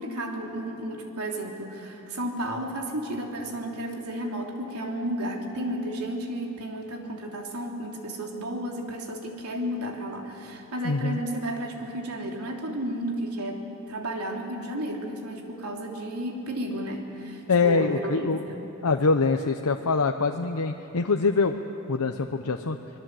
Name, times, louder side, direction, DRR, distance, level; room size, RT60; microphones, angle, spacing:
voice 1, 0.0-13.6 13.9-18.6, right 1 dB, 90° right, 1 dB, 3.3 m, -33 dB
voice 2, 10.8-11.2 17.5-18.4 18.8-21.5 21.9-22.8, left 4 dB, 85° left, 5 dB, 0.8 m, -24 dB
25.5 x 21.0 x 7.8 m, 3.0 s
head